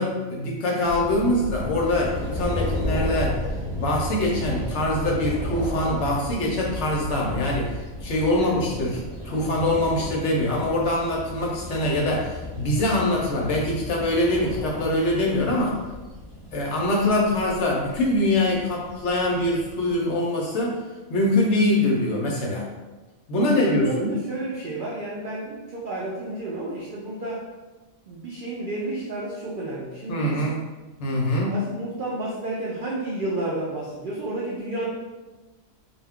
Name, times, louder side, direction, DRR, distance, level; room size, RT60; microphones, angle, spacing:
voice 1, 0.0-3.4 3.7-9.0 9.2-15.8 16.5-20.8 21.1-22.7 23.3-24.1 30.1-30.6 31.0-31.6, left 1 dB, 65° left, -2 dB, 0.8 m, -23 dB
sound 1, 0.8-20.0, left 1 dB, 35° left, 0.8 m, -33 dB
voice 2, 23.4-27.4 28.1-30.4 31.5-34.9, right 2 dB, 90° right, -5 dB, 0.4 m, -31 dB
2.4 x 2.2 x 3.4 m, 1.2 s
omnidirectional pair, 1.5 m